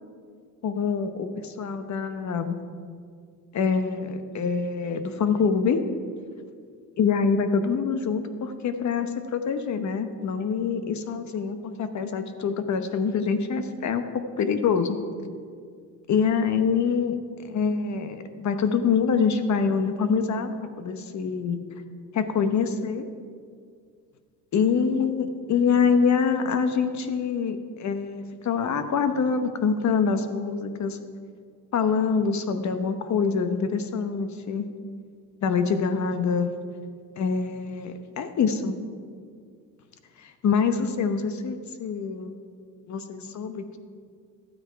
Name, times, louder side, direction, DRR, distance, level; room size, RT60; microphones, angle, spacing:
voice 1, 0.6-2.6 3.5-5.8 7.0-14.0 14.4-15.0 16.1-17.2 17.4-21.6 22.1-23.1 24.5-31.0 31.7-34.7 35.4-36.5 37.2-38.8 40.2-42.4 42.9-43.8, left 5 dB, 50° left, 9 dB, 0.9 m, -25 dB
13.0 x 8.8 x 4.7 m, 2.1 s
cardioid pair, 125°, 35 cm